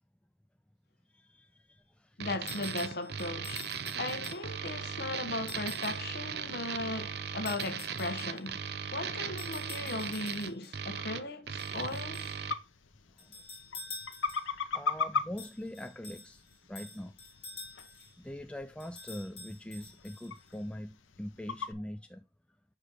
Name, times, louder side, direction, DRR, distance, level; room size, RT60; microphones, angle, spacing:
voice 1, 1.1-2.2 6.4-6.5 13.2-13.4 14.7-17.1 18.2-22.2, left 1 dB, 5° left, 0.3 m, -43 dB
voice 2, 2.2-8.6 8.9-12.3, left 2 dB, 55° left, 1.0 m, -37 dB
sound 1, 2.2-12.6, right 7 dB, 55° right, 0.6 m, -38 dB
sound 2, 2.5-4.7 5.5-6.1 7.5-8.5 9.4-10.8 11.6-12.4 13.2-14.6 15.4-18.2 18.8-20.6, left 3 dB, 30° left, 2.4 m, -48 dB
sound 3, 11.4-21.7, left 5 dB, 85° left, 0.7 m, -40 dB
6.3 x 5.0 x 4.1 m
head